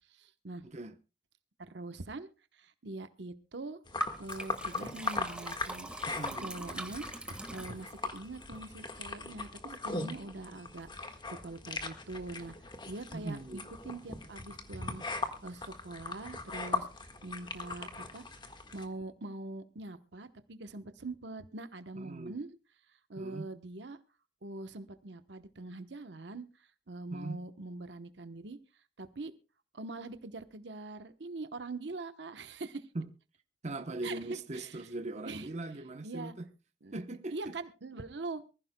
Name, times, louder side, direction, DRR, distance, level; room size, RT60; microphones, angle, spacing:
voice 1, 0.1-0.6 1.6-2.3 2.5-3.8 4.2-5.9 6.4-7.1 7.5-18.2 18.7-22.5 23.1-24.0 24.4-28.6 29.0-29.3 29.7-32.9 34.0-34.9 35.2-35.5 36.0-36.3 36.8-37.0 37.3-38.4, right 2 dB, 75° right, 1.0 m, -43 dB
voice 2, 0.6-0.9 6.1-6.5 13.1-13.6 22.0-22.4 23.2-23.5 27.1-27.4 32.9-33.1 33.6-36.5 36.9-37.5, right 2 dB, 40° right, 0.9 m, -40 dB
sound 1, 3.8-18.8, left 3 dB, 25° left, 1.5 m, -40 dB
Liquid, 4.0-8.2, right 1 dB, 5° right, 1.5 m, -42 dB
24.0 x 15.0 x 2.2 m
head